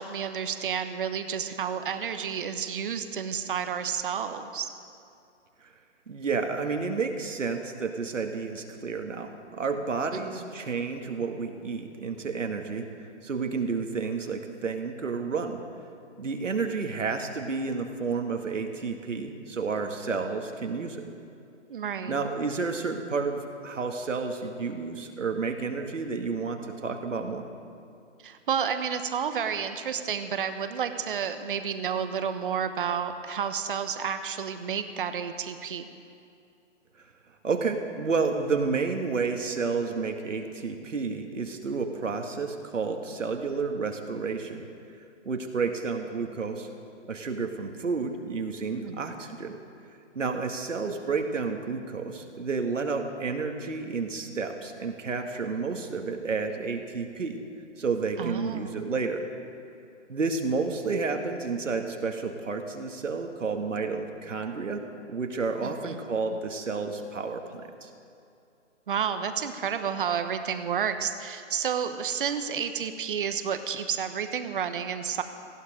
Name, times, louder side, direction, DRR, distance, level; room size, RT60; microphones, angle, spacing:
voice 1, 0.0-4.7 10.1-10.5 21.7-22.2 28.2-35.9 48.9-49.0 58.2-58.7 65.6-66.0 68.9-75.2, right 7 dB, 45° right, 9 dB, 1.2 m, -31 dB
voice 2, 6.1-12.9 13.2-15.6 16.2-21.1 22.0-27.4 37.4-44.7 45.3-46.7 47.1-49.6 50.2-57.4 57.8-59.3 60.1-64.8 65.1-67.9, right 4 dB, 80° right, 4 dB, 2.1 m, -30 dB
19.0 x 15.0 x 5.1 m, 2.5 s
hypercardioid pair, 155°, 37 cm